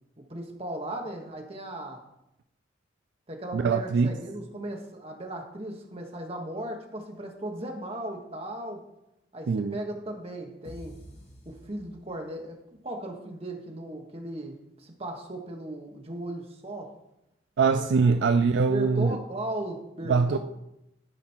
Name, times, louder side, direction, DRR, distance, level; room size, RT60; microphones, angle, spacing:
voice 1, 0.2-2.0 3.3-8.8 9.3-11.0 11.4-12.6 12.8-16.9 17.6-18.1 18.7-20.4, right 1 dB, 30° right, 1.2 m, -37 dB
voice 2, 3.5-4.1 9.5-9.7 17.6-19.2 20.1-20.4, right 5 dB, 65° right, 0.3 m, -23 dB
sound 1, 10.6-12.5, equal, 35° left, 1.5 m, -48 dB
12.0 x 5.0 x 4.5 m
head